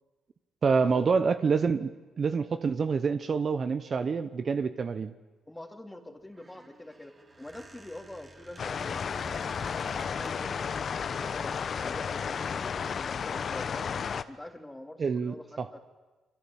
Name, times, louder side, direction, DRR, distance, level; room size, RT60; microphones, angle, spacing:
voice 1, 0.6-1.9 2.2-5.1 15.0-15.7, right 5 dB, 45° right, 11 dB, 1.1 m, -27 dB
voice 2, 5.5-10.8 11.2-13.9 14.3-15.9, left 1 dB, 10° left, 4 dB, 3.4 m, -45 dB
Squeak, 6.2-10.6 11.2-11.7, right 2 dB, 25° right, 4.2 m, -52 dB
sound 1, 8.6-14.2, left 6 dB, 50° left, 1.1 m, -33 dB
28.0 x 22.5 x 8.9 m, 1.2 s
cardioid pair, 90°, 0 cm